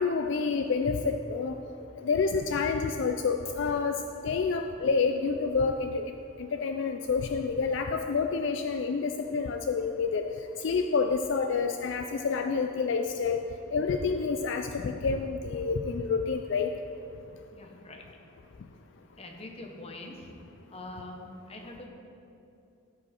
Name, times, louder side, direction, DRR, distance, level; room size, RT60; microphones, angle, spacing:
voice 1, 0.0-1.6 2.0-6.0 6.4-10.2 10.6-13.4 13.7-16.7, left 5 dB, 65° left, 5 dB, 0.4 m, -28 dB
voice 2, 17.5-18.0 19.2-20.4 20.7-21.9, left 2 dB, 30° left, 1 dB, 1.0 m, -44 dB
15.5 x 5.2 x 4.3 m, 2.7 s
head